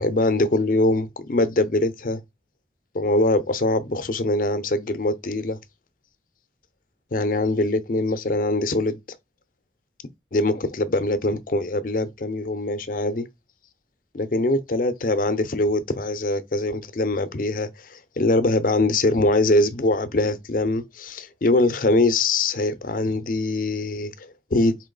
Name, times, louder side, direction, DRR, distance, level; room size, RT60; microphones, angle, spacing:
voice 1, 0.0-2.2 2.9-5.6 7.1-9.0 10.3-13.3 14.1-24.9, left 2 dB, 50° left, 0.6 m, -23 dB
4.4 x 3.0 x 3.9 m
head